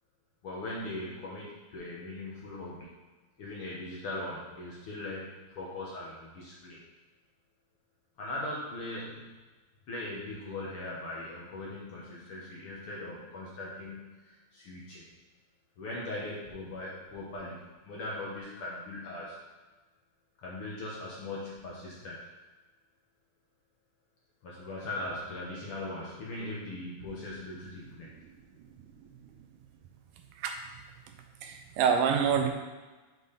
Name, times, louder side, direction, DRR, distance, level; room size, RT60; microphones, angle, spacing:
voice 1, 0.4-2.9 3.4-6.8 8.2-9.3 9.9-14.2 14.5-15.0 15.8-19.4 20.4-22.2 24.4-28.1, left 2 dB, 55° left, -5 dB, 1.7 m, -39 dB
voice 2, 31.4-32.5, right 7 dB, 90° right, 4 dB, 2.5 m, -26 dB
7.4 x 5.9 x 4.1 m, 1.2 s
omnidirectional pair, 3.8 m